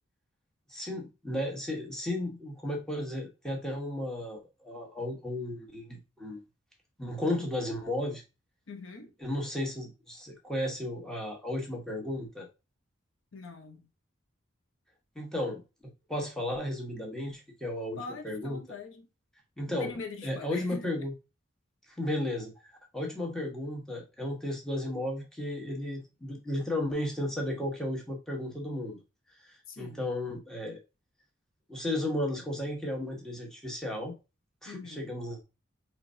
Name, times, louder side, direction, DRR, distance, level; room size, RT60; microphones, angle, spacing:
voice 1, 0.7-6.4 7.0-8.2 9.2-12.5 15.1-18.6 19.6-19.9 20.2-21.1 21.9-29.0 29.4-30.8 31.7-34.1 34.6-35.4, left 1 dB, 5° left, 1.0 m, -34 dB
voice 2, 8.7-9.1 13.3-13.8 18.0-19.1 19.8-20.9 29.7-30.1 34.6-35.2, left 3 dB, 75° left, 0.8 m, -43 dB
4.9 x 3.2 x 2.5 m
head